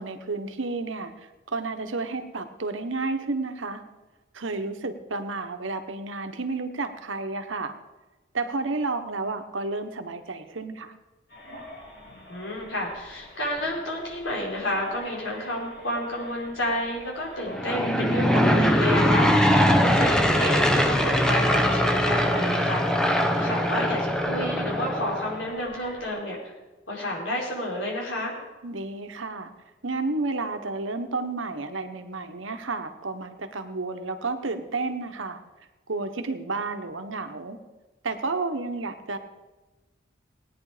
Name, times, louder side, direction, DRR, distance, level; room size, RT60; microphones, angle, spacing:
voice 1, 0.0-3.8 4.3-7.7 8.3-10.9 19.6-19.9 28.6-29.5 29.8-35.4 35.9-37.6 38.0-39.2, right 3 dB, 85° right, 7 dB, 1.2 m, -31 dB
sound 1, 11.3-26.1, equal, 50° left, 4.6 m, -46 dB
voice 2, 12.3-26.5 26.9-28.4, left 1 dB, 80° left, -2 dB, 4.4 m, -31 dB
Aircraft / Engine, 17.5-25.5, equal, 5° left, 0.9 m, -22 dB
18.5 x 9.7 x 5.1 m, 1.2 s
head